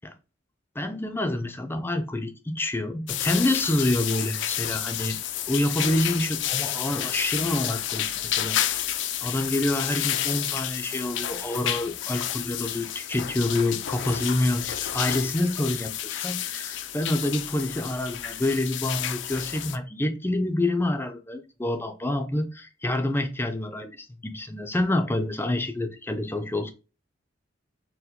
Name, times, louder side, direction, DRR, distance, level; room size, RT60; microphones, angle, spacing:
voice 1, 0.8-5.2 5.5-8.9 9.2-26.7, left 1 dB, 10° left, 0.5 m, -27 dB
sound 1, 3.1-19.8, left 11 dB, 65° left, 0.4 m, -30 dB
4.5 x 2.1 x 3.6 m
head